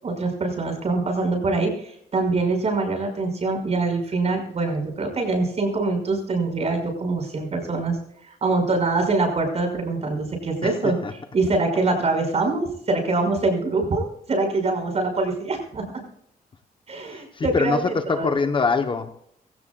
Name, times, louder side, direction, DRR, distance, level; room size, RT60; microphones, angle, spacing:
voice 1, 0.0-8.0 8.2-11.0 11.3-16.0 16.9-17.8 18.1-18.3, right 3 dB, 40° right, 4 dB, 5.9 m, -24 dB
voice 2, 17.0-19.1, left 4 dB, 30° left, 8 dB, 1.0 m, -24 dB
23.0 x 17.0 x 2.4 m, 0.70 s
wide cardioid pair, 150°, 16 cm